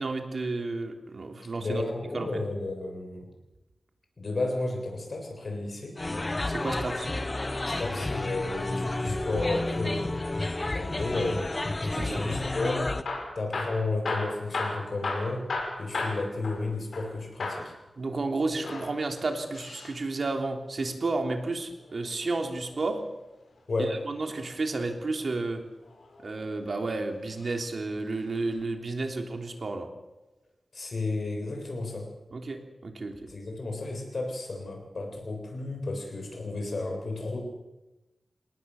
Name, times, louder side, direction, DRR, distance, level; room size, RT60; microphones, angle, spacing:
voice 1, 0.0-1.8 2.1-2.4 6.5-7.1 11.9-12.2 18.0-23.0 23.8-25.6 26.2-29.9 32.3-33.3, right 3 dB, 55° right, 4 dB, 3.3 m, -32 dB
voice 2, 1.6-3.3 4.2-6.0 7.6-10.2 10.7-11.5 11.9-12.9 13.4-15.5 15.8-17.7 23.7-24.1 30.7-32.1 33.3-37.4, left 2 dB, 55° left, 3 dB, 7.2 m, -32 dB
sound 1, 6.0-13.0, left 2 dB, 25° left, 1.2 m, -31 dB
Hammer / Drill, 12.9-17.1 17.4-17.7 18.5-20.0 21.7-22.9 24.6-25.1 25.8-26.6 27.3-27.6 27.9-28.0 28.6-28.7, left 3 dB, 80° left, 6.0 m, -35 dB
29.0 x 19.0 x 7.1 m, 1.0 s
wide cardioid pair, 125°, 0 cm